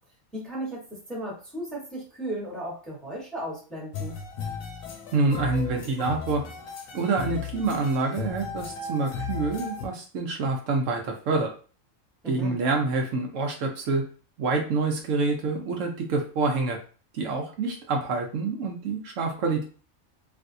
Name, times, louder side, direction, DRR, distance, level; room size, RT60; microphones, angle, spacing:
voice 1, 0.3-4.2 12.2-12.6, right 1 dB, ahead, -3 dB, 1.0 m, -35 dB
sound 1, 3.9-9.9, left 5 dB, 85° left, 1.1 m, -35 dB
voice 2, 5.1-6.4 6.9-11.5 12.2-14.0 14.4-16.8 17.1-19.6, right 3 dB, 75° right, 2 dB, 1.0 m, -27 dB
3.3 x 2.6 x 2.6 m, 0.38 s
omnidirectional pair, 1.4 m